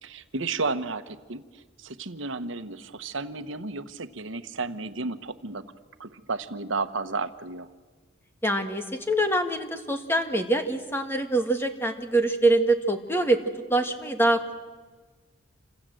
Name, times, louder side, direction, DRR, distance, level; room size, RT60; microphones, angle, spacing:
voice 1, 0.0-5.6 6.0-7.7, right 3 dB, 75° right, 10 dB, 1.2 m, -33 dB
voice 2, 8.4-13.4 13.7-14.4, right 2 dB, 10° left, 6 dB, 1.8 m, -24 dB
28.5 x 27.0 x 7.8 m, 1.4 s
head